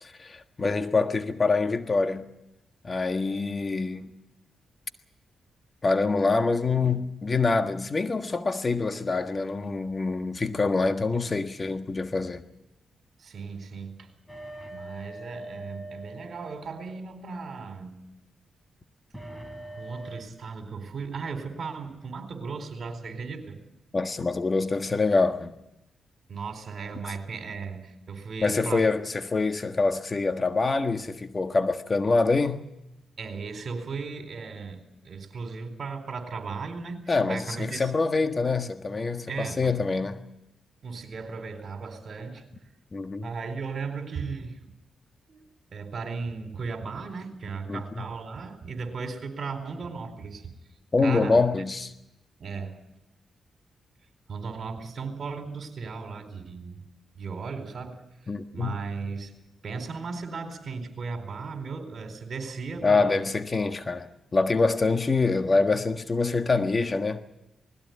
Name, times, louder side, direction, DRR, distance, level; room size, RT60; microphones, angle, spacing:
voice 1, 0.0-2.3 2.8-4.1 5.8-12.4 23.9-25.5 28.4-32.6 37.1-40.2 42.9-43.3 47.7-48.0 50.9-51.9 58.3-58.8 62.8-67.2, left 3 dB, 40° left, 1.5 m, -25 dB
voice 2, 13.2-14.1 14.7-18.0 19.8-23.6 26.3-28.9 33.2-37.9 39.3-39.7 40.8-42.4 43.2-44.7 45.3-45.4 45.7-50.5 51.0-51.4 52.4-52.8 54.3-56.8 57.1-59.3 59.6-63.2, right 4 dB, 60° right, 4.2 m, -36 dB
sound 1, 14.3-17.3 19.1-20.2, right 1 dB, 5° left, 3.2 m, -42 dB
20.0 x 16.0 x 9.4 m
cardioid pair, 60°, 0 cm